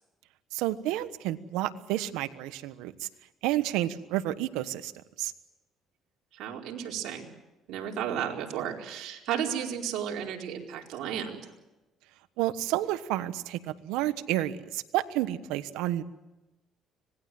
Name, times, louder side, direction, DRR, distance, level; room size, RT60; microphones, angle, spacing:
voice 1, 0.5-2.9 3.4-4.9 5.2-5.3 12.4-13.6 13.8-16.0, right 14 dB, 90° right, 12 dB, 1.2 m, -30 dB
voice 2, 6.3-7.3 7.7-11.4, right 9 dB, 75° right, 0 dB, 4.5 m, -33 dB
25.5 x 20.0 x 7.8 m, 1.0 s
cardioid pair, 95°, 0 cm